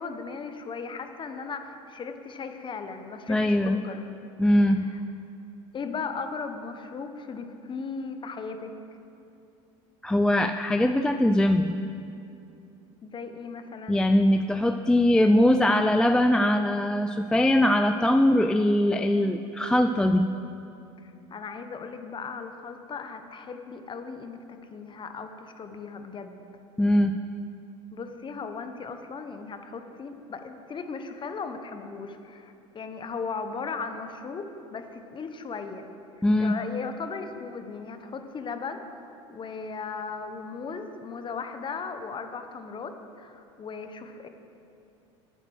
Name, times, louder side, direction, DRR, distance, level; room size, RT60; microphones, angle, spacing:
voice 1, 0.0-3.6 3.8-4.0 4.7-5.0 5.7-8.8 13.0-14.0 21.0-26.4 27.9-35.9 36.4-39.0 39.3-44.3, left 5 dB, 30° left, 8 dB, 1.0 m, -37 dB
voice 2, 3.3-3.8 4.4-4.9 10.0-11.8 13.9-20.3 26.8-27.2 36.2-36.6, left 1 dB, 5° left, 7 dB, 0.3 m, -21 dB
10.0 x 8.7 x 6.4 m, 2.7 s
hypercardioid pair, 90°, 16 cm